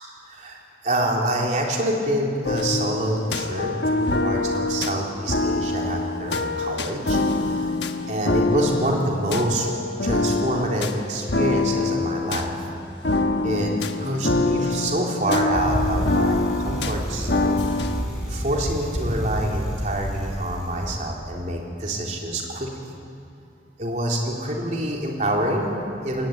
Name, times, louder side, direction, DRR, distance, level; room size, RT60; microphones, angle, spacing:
voice 1, 0.3-7.8 8.1-9.7 10.0-12.7 13.4-13.7 14.0-22.9 23.8-26.3, right 1 dB, 45° right, -1 dB, 3.7 m, -26 dB
sound 1, 2.4-18.0, left 2 dB, 80° left, 1.3 m, -25 dB
Bicycle, 15.5-20.9, equal, 5° right, 7.3 m, -29 dB
21.5 x 18.0 x 9.4 m, 2.6 s
head